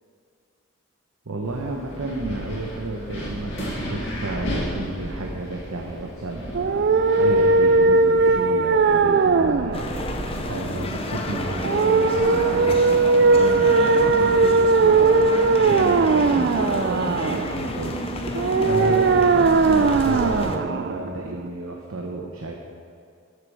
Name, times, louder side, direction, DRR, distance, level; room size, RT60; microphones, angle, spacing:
voice 1, 1.3-22.5, right 2 dB, 85° right, 0 dB, 0.9 m, -32 dB
Wind, 1.4-8.3, equal, 55° left, 2.8 m, -33 dB
sound 1, 6.5-21.5, right 4 dB, 50° right, 0.3 m, -19 dB
sound 2, 9.7-20.6, left 2 dB, 25° left, 0.6 m, -30 dB
12.5 x 6.7 x 4.8 m, 2.3 s
head